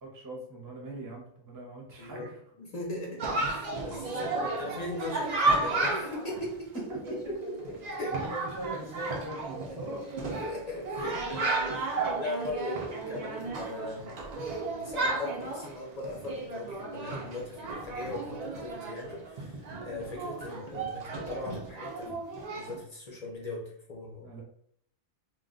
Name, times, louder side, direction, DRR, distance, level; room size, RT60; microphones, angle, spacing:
voice 1, 0.0-2.4 4.2-4.5 6.9-7.0 8.1-10.4 20.5-20.7 22.0-22.2 24.2-24.4, right 1 dB, 20° right, -1 dB, 0.5 m, -41 dB
voice 2, 2.0-2.3 2.6-6.8 7.3-8.2 10.4-14.2 14.6-22.2 22.5-24.3, left 2 dB, 55° left, -2 dB, 0.4 m, -39 dB
Chatter, 3.2-22.8, right 2 dB, 85° right, 0.3 m, -33 dB
2.4 x 2.2 x 3.7 m, 0.66 s
omnidirectional pair, 1.4 m